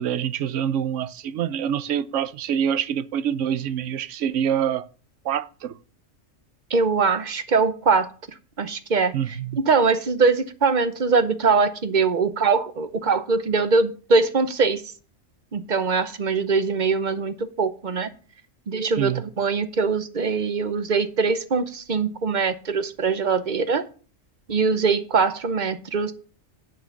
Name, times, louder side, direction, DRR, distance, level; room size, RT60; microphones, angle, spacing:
voice 1, 0.0-4.9 5.2-5.8 9.1-9.6 19.0-19.2, right 9 dB, 70° right, 0.9 m, -26 dB
voice 2, 6.7-8.1 8.6-9.1 9.6-14.9 15.5-18.1 18.7-23.8 24.5-26.1, right 4 dB, 45° right, 0.8 m, -22 dB
9.2 x 6.3 x 5.9 m
omnidirectional pair, 1.4 m